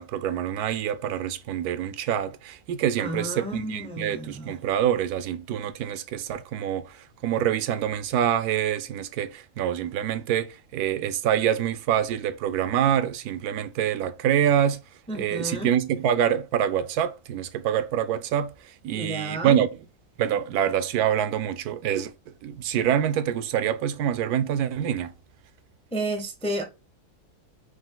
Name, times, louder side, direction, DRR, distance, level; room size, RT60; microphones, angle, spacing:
voice 1, 0.0-14.8 15.1-18.5 18.8-19.7 20.2-22.1 22.4-25.1, right 10 dB, 80° right, 1.1 m, -26 dB
voice 2, 3.0-4.6 15.1-15.8 18.9-19.6 25.9-26.6, right 1 dB, 5° left, 0.4 m, -32 dB
4.8 x 2.5 x 3.8 m
omnidirectional pair, 1.6 m